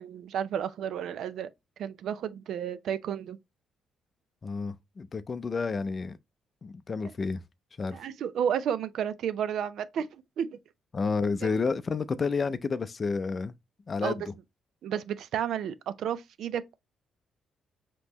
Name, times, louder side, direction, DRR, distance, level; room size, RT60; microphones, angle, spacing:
voice 1, 0.0-1.5 1.8-3.4 7.9-10.6 11.4-11.6 14.0-14.3 14.8-16.8, right 9 dB, 70° right, 0.4 m, -32 dB
voice 2, 4.4-6.2 6.6-7.4 7.8-8.0 10.9-13.5 13.9-14.2, left 4 dB, 35° left, 0.4 m, -30 dB
5.2 x 3.0 x 2.9 m
cardioid pair, 80°, 0 cm